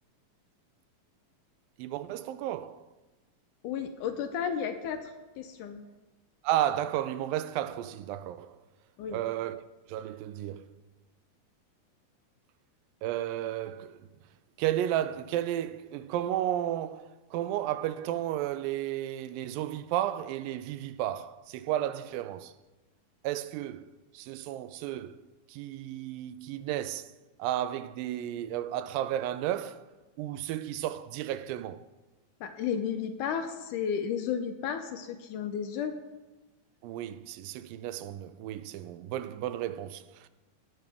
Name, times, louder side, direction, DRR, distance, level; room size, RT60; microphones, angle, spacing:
voice 1, 1.8-2.9 6.4-8.6 9.1-9.6 9.9-10.7 13.0-14.1 14.6-22.5 23.2-23.9 24.1-25.2 25.5-27.1 27.4-29.9 30.2-31.8 36.8-40.3, right 12 dB, 85° right, 2.3 m, -33 dB
voice 2, 3.6-5.8 9.0-9.2 32.4-35.9, left 7 dB, 75° left, 2.0 m, -33 dB
17.5 x 7.6 x 3.5 m
omnidirectional pair, 4.0 m